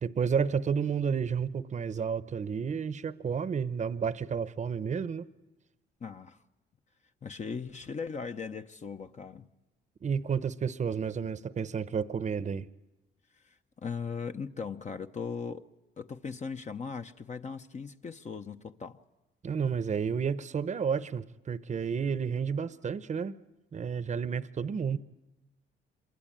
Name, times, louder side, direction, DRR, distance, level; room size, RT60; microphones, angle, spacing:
voice 1, 0.0-5.3 10.0-12.7 19.4-23.4 23.7-25.0, right 6 dB, 35° right, 0.8 m, -31 dB
voice 2, 6.0-6.4 7.2-9.5 13.4-15.7 16.0-19.0, left 5 dB, 35° left, 0.9 m, -38 dB
26.0 x 22.5 x 8.8 m
cardioid pair, 90°, 20 cm